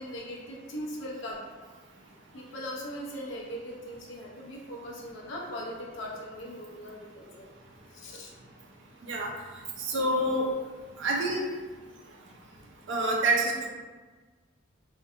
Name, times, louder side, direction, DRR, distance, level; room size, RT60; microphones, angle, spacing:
voice 1, 0.0-1.4 2.3-7.5 7.9-8.3, equal, 65° left, -3 dB, 0.4 m, -39 dB
voice 2, 9.9-10.5 11.0-11.4 12.9-13.7, right 1 dB, 65° right, -1 dB, 0.4 m, -26 dB
2.4 x 2.1 x 2.6 m, 1.4 s
head